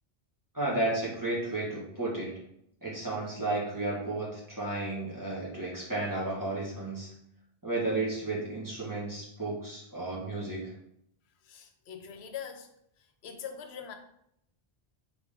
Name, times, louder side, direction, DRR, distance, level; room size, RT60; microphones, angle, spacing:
voice 1, 0.5-2.3 2.8-7.1 7.6-10.7, right 2 dB, 20° right, 1.4 m, -33 dB
voice 2, 11.4-12.7 13.0-13.9, left 8 dB, 80° left, 0.9 m, -43 dB
3.6 x 3.5 x 3.6 m
omnidirectional pair, 1.1 m